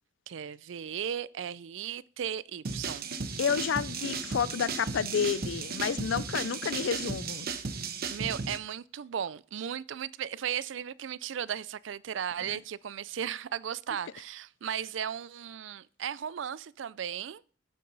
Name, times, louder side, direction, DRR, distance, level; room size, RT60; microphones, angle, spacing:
voice 1, 0.3-3.1 8.1-17.4, right 9 dB, 75° right, 0.4 m, -36 dB
sound 1, 2.6-8.6, right 4 dB, 55° right, 0.9 m, -35 dB
voice 2, 3.4-7.5 12.5-12.6, left 7 dB, 75° left, 0.4 m, -30 dB
9.0 x 8.5 x 4.0 m
head